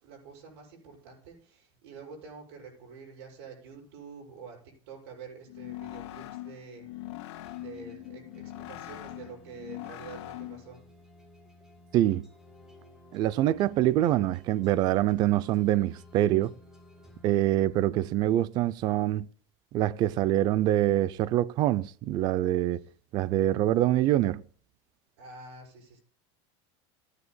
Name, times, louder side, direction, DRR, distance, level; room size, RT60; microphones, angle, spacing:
voice 1, 0.0-6.9 7.5-10.8 22.7-22.9 25.2-26.0, right 5 dB, 65° right, 7.2 m, -47 dB
sound 1, 5.4-10.7, left 15 dB, 80° left, 1.9 m, -42 dB
sound 2, 7.4-18.1, left 1 dB, 5° right, 2.3 m, -55 dB
voice 2, 11.9-12.3 13.1-16.5 17.2-19.3 19.7-22.8 23.1-24.4, right 13 dB, 30° right, 0.4 m, -25 dB
28.0 x 9.8 x 2.2 m
supercardioid pair, 180°, 14 cm